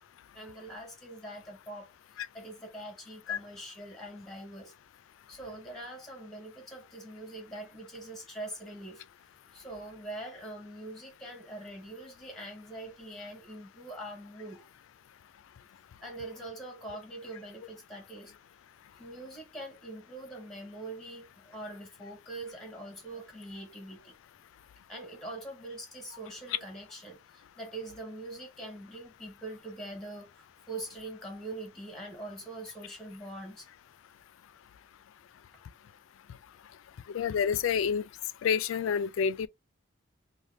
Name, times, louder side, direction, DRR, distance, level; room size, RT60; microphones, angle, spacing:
voice 1, 0.3-1.9 2.3-4.7 5.3-14.7 16.0-18.3 18.9-24.2 24.9-33.7, right 1 dB, ahead, 0.9 m, -43 dB
voice 2, 37.1-38.1 38.4-39.5, left 7 dB, 80° left, 0.3 m, -28 dB
3.3 x 2.2 x 2.5 m
head